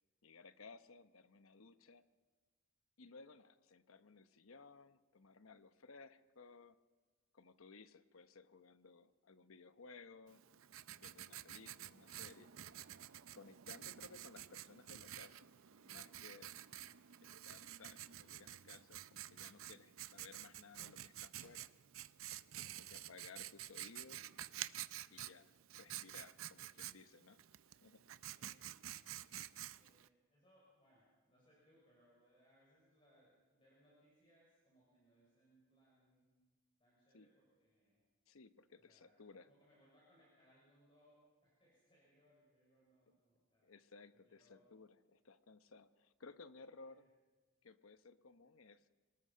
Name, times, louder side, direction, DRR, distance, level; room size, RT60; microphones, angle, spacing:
voice 1, 0.2-2.0 3.0-6.8 7.3-10.4 11.0-12.5 13.3-15.5 15.8-16.5 17.2-21.7 22.7-24.3 25.1-27.4 27.8-28.0 37.1-37.3 38.3-39.5 43.6-47.1 47.6-48.9, left 4 dB, 90° left, 11 dB, 0.9 m, -59 dB
Writing, 10.3-30.1, right 12 dB, 85° right, 0.6 m, -50 dB
sound 1, 13.9-18.4 19.4-19.7 20.4-20.9 21.4-21.5, left 1 dB, 10° left, 3.3 m, -78 dB
voice 2, 22.6-23.0 28.3-28.8 29.8-36.3 36.8-38.0 38.7-43.7 44.1-44.7 46.8-47.1, equal, 25° left, -6 dB, 6.2 m, -72 dB
26.5 x 19.5 x 5.7 m, 1.3 s
head